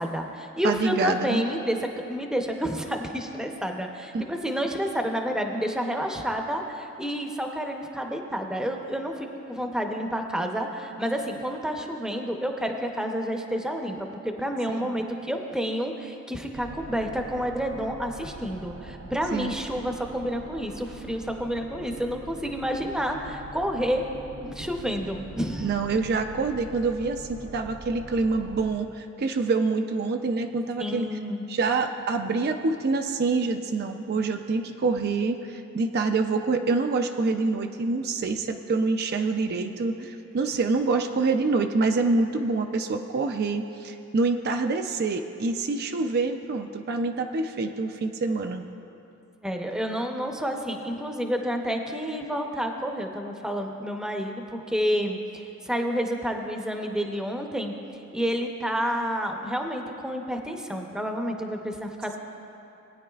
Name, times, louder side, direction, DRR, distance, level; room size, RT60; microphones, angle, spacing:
voice 1, 0.0-14.0 14.2-24.0 24.4-25.7 30.8-31.4 49.4-57.7 58.1-62.2, equal, 5° right, 3 dB, 0.6 m, -29 dB
voice 2, 0.6-1.4 4.1-4.2 14.7-14.9 19.3-19.6 25.6-31.1 31.5-48.6, right 3 dB, 50° right, 6 dB, 0.4 m, -26 dB
sound 1, 16.5-28.7, right 2 dB, 75° right, 0.7 m, -43 dB
19.0 x 9.5 x 2.3 m, 2.9 s
head